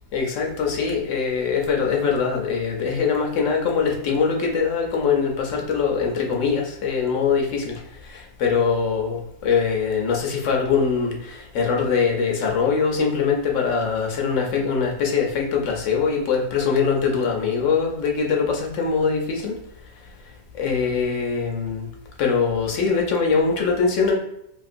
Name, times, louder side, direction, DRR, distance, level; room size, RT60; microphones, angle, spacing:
voice 1, 0.1-7.7 8.1-19.5 20.5-21.9 22.2-24.1, left 5 dB, 65° left, 0 dB, 0.8 m, -22 dB
2.9 x 2.8 x 2.5 m, 0.81 s
omnidirectional pair, 1.7 m